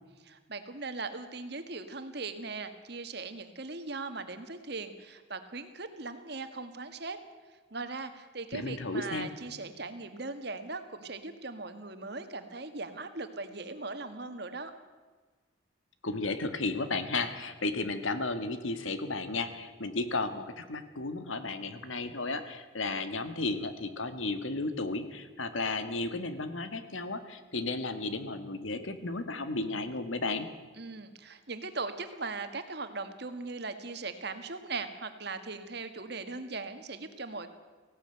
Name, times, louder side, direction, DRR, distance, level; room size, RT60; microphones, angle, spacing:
voice 1, 0.2-7.2 7.7-14.7 30.8-37.5, right 3 dB, 55° right, 8 dB, 1.7 m, -39 dB
voice 2, 8.5-9.3 16.0-30.5, left 3 dB, 80° left, 10 dB, 1.8 m, -34 dB
18.0 x 16.5 x 9.0 m, 1.4 s
head